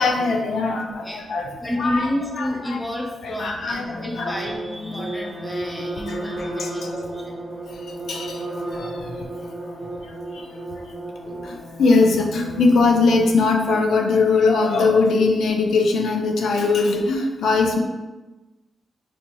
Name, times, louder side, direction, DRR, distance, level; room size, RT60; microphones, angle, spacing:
voice 1, 0.0-1.5 1.8-2.1 2.4-2.8 3.2-4.3 6.1-6.2 6.6-6.9 8.1-8.4 8.7-9.3 10.1-10.4 11.3-17.8, left 3 dB, 85° left, 2 dB, 0.4 m, -21 dB
voice 2, 0.6-1.2 1.6-7.4 11.7-11.8, left 1 dB, 10° left, -1 dB, 0.7 m, -30 dB
sound 1, 3.7-13.3, right 1 dB, 20° right, 0.9 m, -33 dB
4.2 x 2.6 x 2.9 m, 1.1 s
wide cardioid pair, 115°, 0 cm